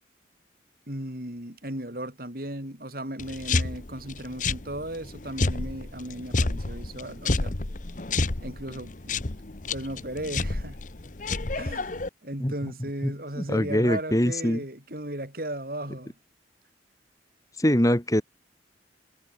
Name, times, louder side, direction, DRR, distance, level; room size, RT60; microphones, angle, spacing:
voice 1, 0.9-7.6 8.4-9.1 9.7-10.8 11.6-16.1, right 1 dB, 55° right, 5.7 m, -36 dB
sound 1, 3.2-12.1, left 3 dB, 45° left, 1.1 m, -30 dB
voice 2, 13.4-14.6 17.6-18.2, equal, 20° left, 2.7 m, -23 dB
head